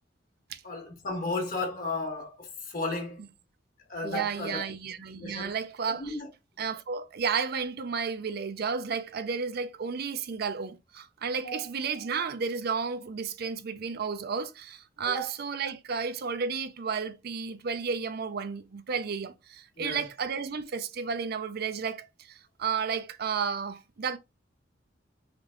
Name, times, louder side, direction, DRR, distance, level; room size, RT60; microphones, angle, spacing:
voice 1, 0.6-3.2 3.9-4.6 5.2-5.5 5.9-6.3 11.4-11.7 11.9-12.3 15.2-15.3 19.8-20.1, left 2 dB, 50° left, 1.5 m, -34 dB
voice 2, 4.0-6.2 6.6-24.2, right 5 dB, 55° right, 0.5 m, -32 dB
3.7 x 3.5 x 3.6 m
head